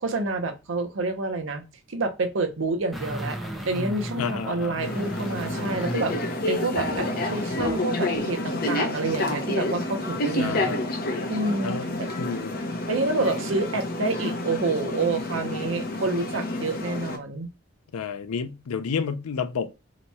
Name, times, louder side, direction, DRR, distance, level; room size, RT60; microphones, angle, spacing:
voice 1, 0.0-1.6 1.9-3.4 3.6-6.1 6.5-10.8 11.3-12.1 12.9-17.5, right 3 dB, 60° right, 0.6 m, -28 dB
sound 1, 2.9-7.8 8.2-8.3, right 1 dB, ahead, 0.5 m, -36 dB
voice 2, 4.2-4.8 10.4-10.9 11.6-12.6 17.9-19.7, left 6 dB, 85° left, 0.4 m, -30 dB
sound 2, 4.8-17.2, left 1 dB, 45° left, 0.6 m, -29 dB
2.9 x 2.2 x 4.1 m
head